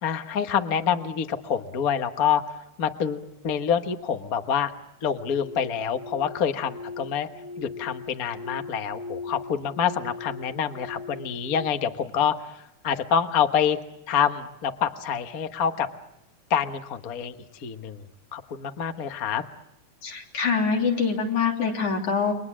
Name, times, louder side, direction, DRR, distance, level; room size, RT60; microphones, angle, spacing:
voice 1, 0.0-4.7 5.0-7.3 7.6-12.6 12.8-13.8 14.1-15.9 16.5-18.0 18.3-19.4, left 8 dB, 45° left, 7 dB, 1.1 m, -26 dB
sound 1, 5.1-11.7, left 4 dB, 85° right, 0.6 m, -40 dB
voice 2, 20.0-22.3, left 5 dB, 75° left, 1 dB, 4.6 m, -24 dB
29.5 x 23.5 x 7.5 m, 0.85 s
omnidirectional pair, 3.4 m